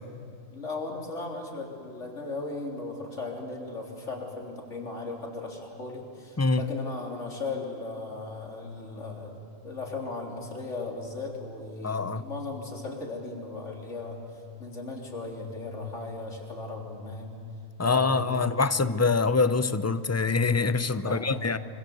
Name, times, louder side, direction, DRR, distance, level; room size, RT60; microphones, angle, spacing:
voice 1, 0.5-9.4 9.6-14.2 14.6-17.4 17.8-18.5 20.9-21.6, left 3 dB, 75° left, 3.9 m, -37 dB
voice 2, 11.8-12.2 17.8-21.6, left 4 dB, 20° left, 0.4 m, -25 dB
26.0 x 25.0 x 8.0 m
omnidirectional pair, 1.3 m